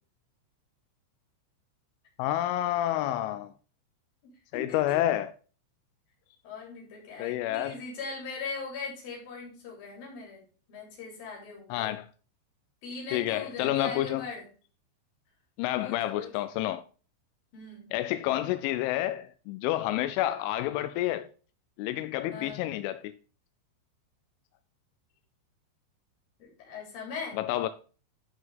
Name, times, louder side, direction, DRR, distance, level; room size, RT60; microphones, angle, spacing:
voice 1, 2.2-3.5 4.5-5.3 7.2-7.8 11.7-12.1 13.1-14.2 15.6-16.8 17.9-21.3 21.8-23.1 27.3-27.7, left 14 dB, 85° left, 2.8 m, -29 dB
voice 2, 4.2-5.0 6.4-10.4 10.7-11.9 12.8-14.4 15.8-16.3 17.5-17.9 22.3-22.7 26.4-27.4, left 4 dB, 45° left, 4.9 m, -40 dB
12.5 x 5.5 x 3.5 m
omnidirectional pair, 5.9 m